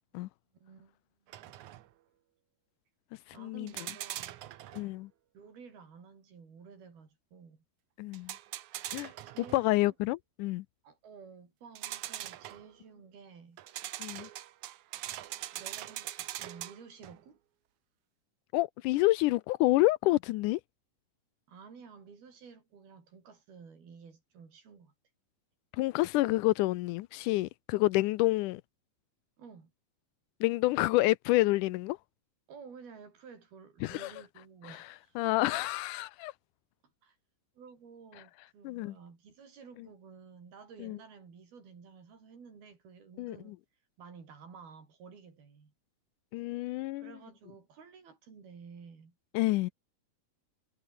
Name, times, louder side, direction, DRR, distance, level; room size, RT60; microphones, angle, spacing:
voice 1, 0.5-1.0 1.2-1.6 3.3-4.4 5.3-7.6 9.3-9.9 10.8-13.6 15.5-17.4 21.5-24.9 29.4-29.7 32.5-35.2 37.0-37.2 37.6-43.6 44.0-45.7 47.0-49.2, right 5 dB, 80° right, 7.2 m, -52 dB
sound 1, 1.3-1.9 3.7-4.9 8.1-9.7 11.8-12.8 13.6-17.2, right 14 dB, 65° right, 2.1 m, -42 dB
voice 2, 3.4-3.7 4.7-5.1 8.0-8.3 8.9-9.1 9.5-10.7 14.0-14.3 18.5-20.6 25.7-28.6 30.4-32.0 33.8-34.1 34.6-34.8 35.2-36.3 38.6-39.0 40.8-41.0 43.2-43.4 46.3-47.1 49.3-49.7, left 19 dB, 90° left, 1.8 m, -28 dB
omnidirectional pair, 4.3 m